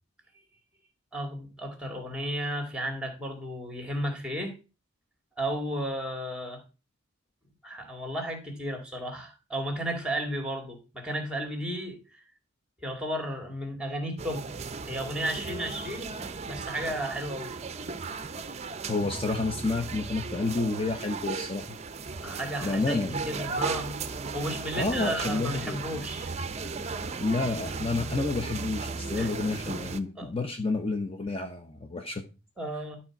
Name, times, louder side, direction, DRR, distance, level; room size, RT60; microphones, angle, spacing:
voice 1, 1.1-4.6 5.4-6.6 7.6-12.0 12.8-14.5 14.9-16.1 16.4-17.5 22.2-24.0 24.3-26.3 29.2-29.3 30.2-30.3 32.6-33.0, equal, 5° right, 4 dB, 2.1 m, -33 dB
sound 1, 14.2-30.0, right 4 dB, 30° right, 0.6 m, -36 dB
voice 2, 18.9-21.8 22.6-23.1 24.8-25.8 27.2-32.2, left 3 dB, 25° left, 5 dB, 0.7 m, -30 dB
11.5 x 4.3 x 5.9 m, 0.31 s
head